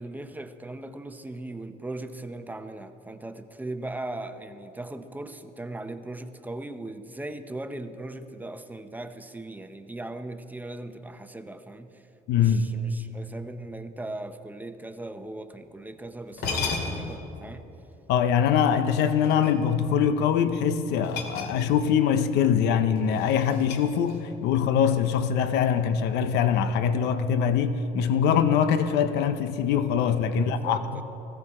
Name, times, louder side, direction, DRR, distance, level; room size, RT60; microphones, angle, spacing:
voice 1, 0.0-17.7 30.3-31.0, right 2 dB, 10° right, 0.7 m, -39 dB
voice 2, 12.3-12.7 18.1-31.0, left 7 dB, 90° left, 0.7 m, -23 dB
sound 1, 15.9-16.0 16.3-17.2 18.9-19.9 21.0-22.0 22.3-22.5 23.0-24.4, left 4 dB, 70° left, 2.4 m, -34 dB
19.0 x 15.0 x 4.3 m
cardioid pair, 110°, 17 cm